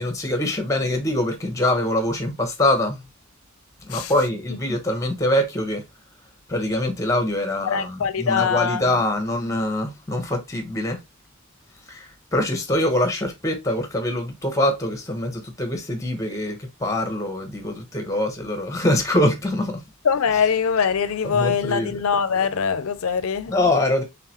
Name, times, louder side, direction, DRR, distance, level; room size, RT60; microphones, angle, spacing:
voice 1, 0.0-3.0 3.8-5.8 6.5-11.0 11.9-19.8 21.2-22.0 23.5-24.0, left 1 dB, 15° left, 1.0 m, -24 dB
voice 2, 7.7-8.8 20.0-23.5, left 6 dB, 75° left, 0.5 m, -22 dB
3.9 x 3.4 x 2.9 m
head